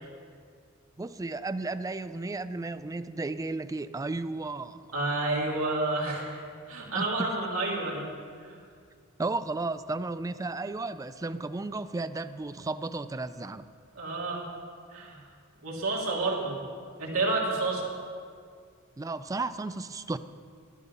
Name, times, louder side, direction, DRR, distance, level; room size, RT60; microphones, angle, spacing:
voice 1, 1.0-4.9 6.9-7.4 9.2-13.7 19.0-20.2, right 3 dB, 15° right, 12 dB, 0.3 m, -34 dB
voice 2, 4.9-6.4 6.7-8.1 8.4-8.6 14.0-14.5 14.9-15.2 15.6-16.6 17.0-17.8, right 2 dB, 80° right, -3 dB, 2.6 m, -29 dB
12.0 x 10.5 x 5.5 m, 2.2 s
head